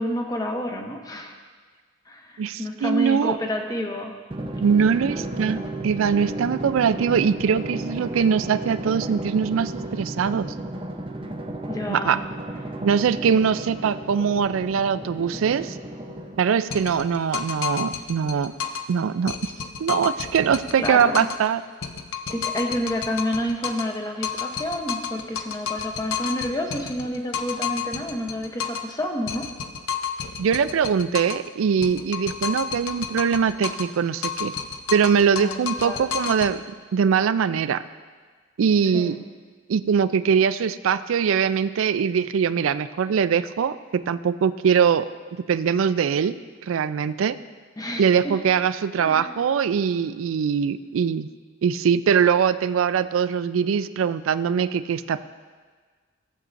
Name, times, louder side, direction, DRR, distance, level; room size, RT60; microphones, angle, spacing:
voice 1, 0.0-1.3 2.1-4.1 11.7-12.2 20.8-21.3 22.3-29.5 35.4-36.1 38.9-39.2 47.8-48.3 49.0-49.3, left 1 dB, 20° left, 3 dB, 0.8 m, -29 dB
voice 2, 2.4-3.4 4.6-10.5 11.9-12.2 12.8-15.8 16.4-18.5 18.9-19.5 19.8-21.6 30.4-34.5 34.9-36.6 36.9-37.8 38.6-39.2 39.7-45.1 45.5-46.4 46.6-47.4 48.0-51.3 51.6-55.2, right 7 dB, 85° right, 13 dB, 0.4 m, -22 dB
Drum, 4.3-16.7, right 1 dB, 25° right, 0.6 m, -33 dB
sound 1, 16.7-18.9 19.3-21.5 21.8-24.0 24.2-28.9 29.3-31.5 31.8-34.0 34.2-36.5, left 7 dB, 85° left, 0.6 m, -31 dB
16.0 x 7.7 x 2.6 m, 1.5 s
head